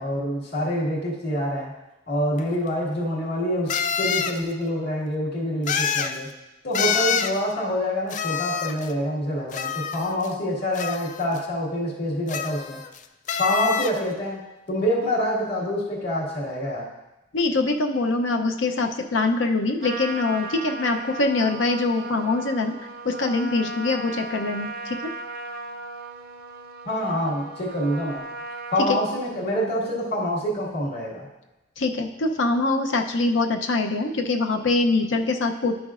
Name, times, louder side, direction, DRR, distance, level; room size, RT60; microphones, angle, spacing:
voice 1, 0.0-1.7 2.1-6.3 6.6-12.8 13.4-14.4 14.7-16.9 26.8-28.2 28.7-31.2, equal, 55° left, -7 dB, 1.9 m, -26 dB
sound 1, 2.4-2.5 3.7-4.4 5.7-6.2 6.7-7.4 8.1-8.9 9.5-10.3 10.8-11.4 12.3-13.0 13.3-14.0, left 7 dB, 40° left, 0.3 m, -27 dB
voice 2, 17.3-22.7 23.0-25.1 28.9-29.0 31.8-35.8, left 3 dB, 80° left, 5 dB, 0.6 m, -24 dB
Trumpet, 19.8-28.9, right 3 dB, 55° right, 0.5 m, -36 dB
11.5 x 6.0 x 2.5 m, 0.98 s
head